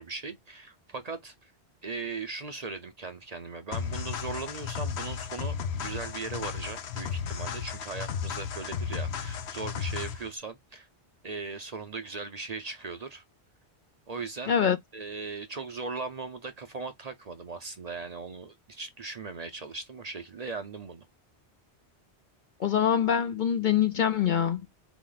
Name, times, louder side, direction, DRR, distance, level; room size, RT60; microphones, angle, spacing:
voice 1, 0.0-1.5 1.8-10.9 11.2-13.2 14.1-14.5 14.9-21.1, right 4 dB, 45° right, 0.6 m, -38 dB
sound 1, 3.7-10.3, left 7 dB, 75° left, 1.0 m, -34 dB
voice 2, 22.6-24.6, left 8 dB, 55° left, 0.6 m, -24 dB
4.2 x 3.0 x 3.9 m
omnidirectional pair, 1.1 m